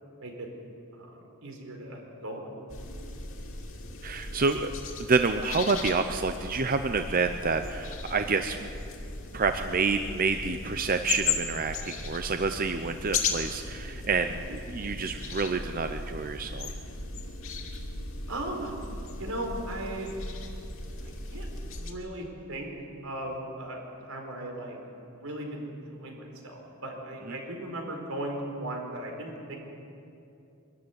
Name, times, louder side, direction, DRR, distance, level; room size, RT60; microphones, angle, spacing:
voice 1, 0.9-2.4 18.3-18.8 19.2-20.1 21.0-22.7 23.0-24.8 25.1-29.6, right 1 dB, 90° right, 1 dB, 4.7 m, -37 dB
sound 1, 2.7-21.9, left 4 dB, 70° left, 2.6 m, -37 dB
voice 2, 4.0-4.7 5.0-8.7 9.3-16.7 27.3-27.4, right 4 dB, 40° right, 7 dB, 0.7 m, -28 dB
24.0 x 13.5 x 9.6 m, 2.7 s
head